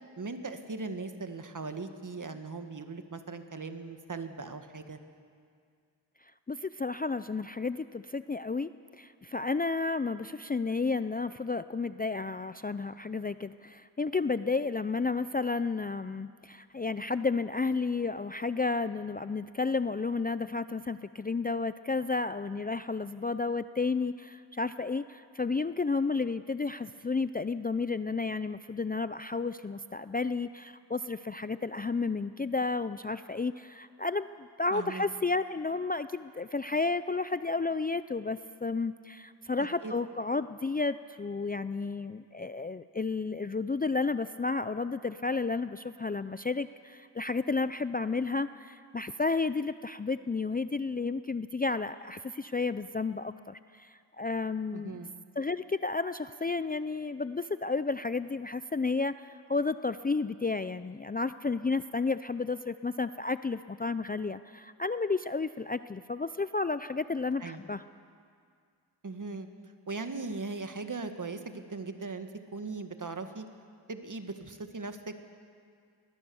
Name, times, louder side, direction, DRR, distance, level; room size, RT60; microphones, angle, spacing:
voice 1, 0.2-5.0 34.7-35.0 39.6-39.9 54.7-55.1 67.4-67.6 69.0-69.5 69.9-73.4 73.9-75.2, right 3 dB, 45° right, 7 dB, 1.8 m, -39 dB
voice 2, 6.5-8.7 9.0-55.0 55.4-67.8, left 4 dB, 20° left, 13 dB, 0.5 m, -32 dB
21.0 x 19.5 x 7.1 m, 2.2 s
cardioid pair, 55°, 44 cm